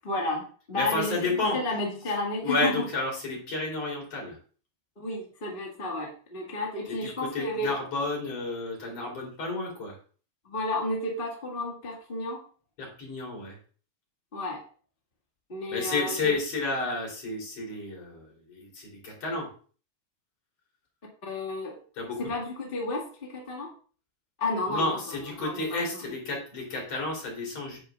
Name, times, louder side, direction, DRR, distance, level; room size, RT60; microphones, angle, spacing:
voice 1, 0.0-2.7 5.0-7.7 10.4-12.4 14.3-14.6 15.5-16.4 21.2-21.8 22.2-23.7 24.4-25.0 25.4-26.0, left 2 dB, 25° left, -1 dB, 1.5 m, -32 dB
voice 2, 0.7-1.6 2.4-4.4 6.9-10.0 12.8-13.6 15.7-19.5 21.9-22.2 24.7-27.8, left 2 dB, 55° left, -1 dB, 4.5 m, -31 dB
9.6 x 9.3 x 2.5 m, 0.40 s
omnidirectional pair, 3.4 m